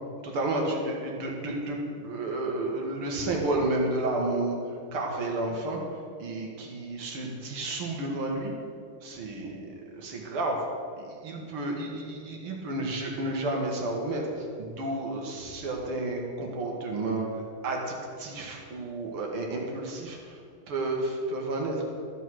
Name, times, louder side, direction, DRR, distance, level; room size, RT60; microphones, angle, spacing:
voice 1, 0.2-5.8 6.2-8.5 9.0-9.6 9.9-10.6 11.0-17.2 17.6-20.4 20.7-21.8, right 2 dB, 80° right, 0 dB, 2.4 m, -31 dB
12.5 x 5.5 x 6.1 m, 2.3 s
omnidirectional pair, 2.4 m